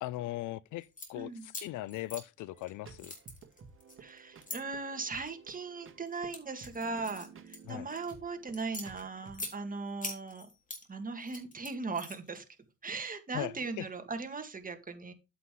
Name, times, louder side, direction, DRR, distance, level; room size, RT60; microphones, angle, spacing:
voice 1, 0.0-3.1 7.7-7.9 13.3-13.9, left 16 dB, 85° left, 0.5 m, -39 dB
sound 1, 0.8-1.1 1.5-2.7 3.0-4.6 5.3-5.6 6.1-8.1 8.5-9.5 10.0-10.8 11.2-12.4, left 2 dB, 25° left, 3.3 m, -43 dB
sound 2, 2.5-9.5, right 5 dB, 45° right, 1.8 m, -54 dB
voice 2, 4.0-10.5 10.9-12.4 12.8-15.1, right 4 dB, 30° right, 1.8 m, -38 dB
8.4 x 7.5 x 3.7 m
cardioid pair, 90°, 30 cm